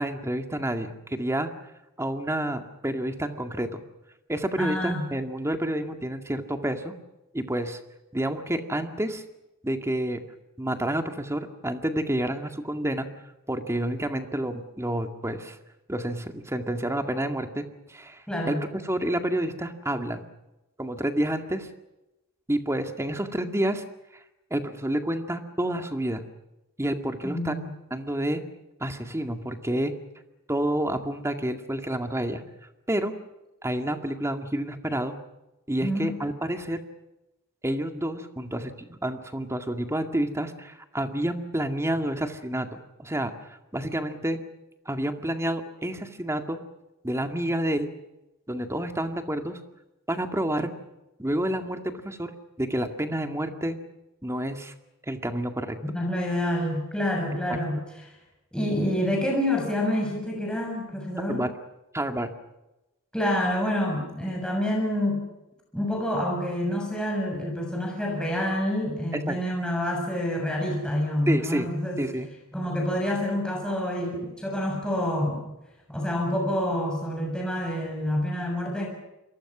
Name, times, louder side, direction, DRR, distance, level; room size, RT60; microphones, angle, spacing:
voice 1, 0.0-1.5 2.0-3.8 4.3-6.9 7.3-7.8 8.1-9.2 9.6-10.2 10.6-13.1 13.5-15.6 15.9-20.2 20.8-21.7 22.5-23.8 24.5-26.2 26.8-27.5 27.9-28.4 28.8-29.9 30.5-32.4 32.9-33.1 33.6-35.2 35.7-36.8 37.6-43.3 43.7-44.4 44.9-46.6 47.0-47.9 48.5-49.6 50.1-50.7 51.2-52.3 52.6-53.8 54.2-54.7 55.1-55.8 57.5-57.6 61.3-61.5 61.9-62.3 69.3-69.4 71.3-71.7 72.0-72.3, right 1 dB, 15° right, 6 dB, 2.1 m, -29 dB
voice 2, 4.6-5.1 18.3-18.6 27.2-27.7 35.8-36.1 55.9-58.0 58.5-61.4 63.1-65.3 65.7-72.0 72.5-75.5 75.9-78.9, left 1 dB, 5° left, 0 dB, 6.9 m, -27 dB
28.5 x 23.0 x 6.2 m, 0.98 s
head